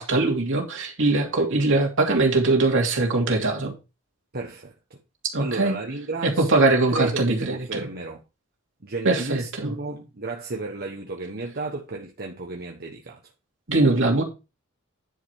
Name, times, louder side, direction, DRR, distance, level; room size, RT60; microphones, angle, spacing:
voice 1, 0.0-3.7 5.3-5.7 6.2-7.9 9.0-9.7 13.7-14.2, right 2 dB, 65° right, 2.8 m, -21 dB
voice 2, 4.3-5.0 5.4-8.2 8.8-13.2, right 3 dB, 45° right, 1.2 m, -33 dB
10.5 x 5.1 x 4.7 m
head